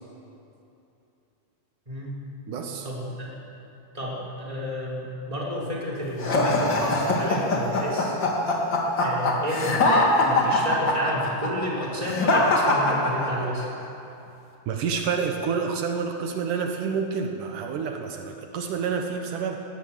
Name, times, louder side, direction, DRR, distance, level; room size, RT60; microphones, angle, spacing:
voice 1, 1.9-2.2 2.8-3.3 3.9-8.2 8.9-9.9 10.2-13.7, equal, 10° right, -5 dB, 4.4 m, -31 dB
voice 2, 2.5-2.9 14.7-19.6, right 6 dB, 80° right, 4 dB, 2.8 m, -28 dB
sound 1, 6.2-13.6, left 2 dB, 40° left, 2.7 m, -22 dB
19.5 x 18.0 x 7.5 m, 2.9 s
omnidirectional pair, 3.6 m